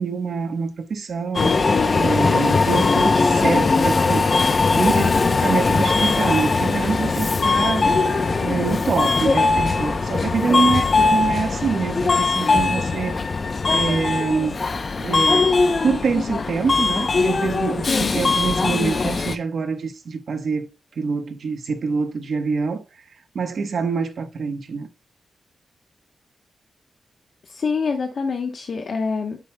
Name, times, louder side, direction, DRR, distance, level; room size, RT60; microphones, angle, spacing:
voice 1, 0.0-4.3 4.7-7.9 8.2-10.8 11.1-13.2 13.7-14.6 15.0-20.7 21.0-22.8 23.3-24.9, right 5 dB, 65° right, 1.0 m, -25 dB
Subway metro underground, 1.3-19.4, left 4 dB, 40° left, 0.6 m, -20 dB
voice 2, 17.9-18.2 27.4-29.4, left 5 dB, 55° left, 1.0 m, -26 dB
9.5 x 7.0 x 2.2 m
wide cardioid pair, 130°, 0 cm